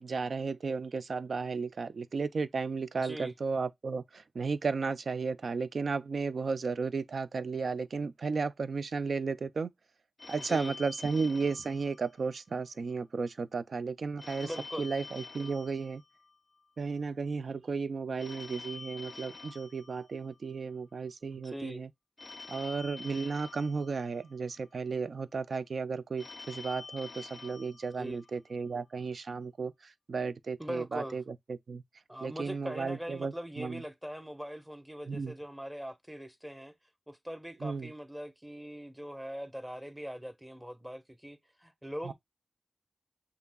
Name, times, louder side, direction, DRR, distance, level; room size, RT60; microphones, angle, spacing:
voice 1, 0.0-9.7 10.3-14.5 14.8-16.0 16.8-21.9 22.5-31.2 31.7-31.8 32.2-33.8 35.1-35.3 37.6-37.9 42.0-42.1, right 4 dB, 85° right, 0.4 m, -34 dB
voice 2, 3.0-3.3 10.4-10.7 14.4-14.9 21.3-21.8 28.0-28.2 30.6-31.2 32.1-36.7 37.1-42.1, equal, 10° right, 1.2 m, -41 dB
Telephone, 10.2-12.7 14.2-16.7 18.2-20.7 22.2-24.7 26.2-28.7, left 3 dB, 50° left, 0.4 m, -47 dB
6.8 x 2.8 x 2.3 m
cardioid pair, 50°, 0 cm